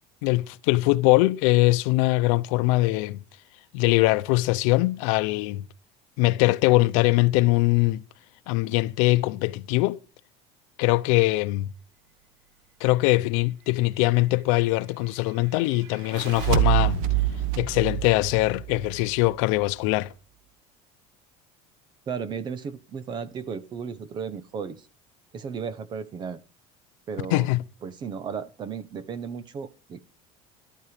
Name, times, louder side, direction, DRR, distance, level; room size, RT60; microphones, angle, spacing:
voice 1, 0.2-3.2 3.7-5.6 6.2-8.0 8.5-10.0 10.8-11.7 12.8-17.0 17.6-20.1 27.3-27.6, left 20 dB, 90° left, 0.8 m, -22 dB
sound 1, 15.9-19.3, right 12 dB, 90° right, 2.0 m, -26 dB
voice 2, 22.1-24.9 25.3-26.4 27.1-27.5 27.8-30.1, right 6 dB, 25° right, 1.1 m, -34 dB
13.0 x 12.5 x 5.1 m
cardioid pair, 175°, 16 cm